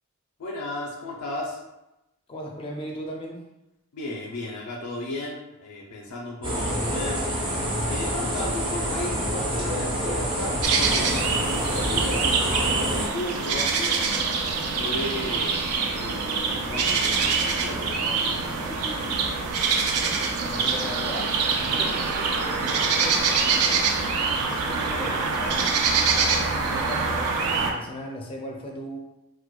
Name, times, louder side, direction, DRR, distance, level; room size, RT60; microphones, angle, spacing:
voice 1, 0.4-1.6 3.9-7.2 7.9-14.3 14.7-15.6 15.9-19.3, left 2 dB, 85° left, -2 dB, 0.5 m, -35 dB
voice 2, 2.3-3.4 18.6-19.3 20.5-23.9 24.4-29.0, equal, 25° left, 0 dB, 0.4 m, -38 dB
sound 1, 6.4-13.1, equal, 20° right, 0.5 m, -27 dB
sound 2, 10.6-27.7, right 5 dB, 80° right, 0.4 m, -25 dB
4.4 x 2.2 x 2.2 m, 0.94 s
head